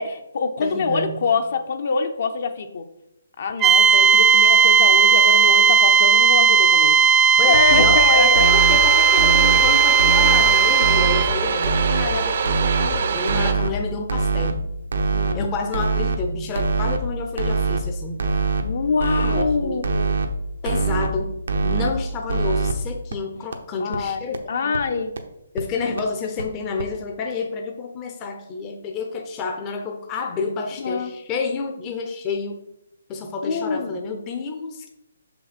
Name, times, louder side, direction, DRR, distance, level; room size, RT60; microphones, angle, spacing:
voice 1, 0.0-2.9 3.4-7.0 7.4-8.4 15.1-15.5 18.6-20.1 23.8-24.2 24.5-25.2 30.8-31.1 33.4-33.9, left 4 dB, 55° left, 7 dB, 0.8 m, -24 dB
voice 2, 0.6-1.3 7.4-14.7 15.3-18.2 19.2-19.8 20.6-21.3 21.6-24.7 25.5-32.6 33.1-34.9, left 4 dB, 20° left, 3 dB, 0.7 m, -29 dB
sound 1, 3.6-11.3, right 6 dB, 15° right, 0.3 m, -15 dB
sound 2, 7.5-8.0 8.3-8.8 9.2-9.6 10.0-10.4 10.8-11.2 11.6-12.1 12.4-12.9 13.3-13.7 14.1-14.5 14.9-15.3 15.7-16.2 16.6-17.0 17.4-17.8 18.2-18.6 19.0-19.4 19.8-20.3 20.7-21.1 21.5-21.9 22.3-22.7 23.1-23.2 23.5-23.6 23.9-24.0 24.3-24.4 24.7-24.8 25.2-25.3 25.6-25.7 26.0-26.1 26.4-26.5 26.8-26.9, right 4 dB, 80° right, 0.9 m, -22 dB
sound 3, 8.4-13.5, right 6 dB, 50° right, 0.7 m, -25 dB
6.2 x 5.6 x 4.2 m, 0.84 s
hypercardioid pair, 160°, 0 cm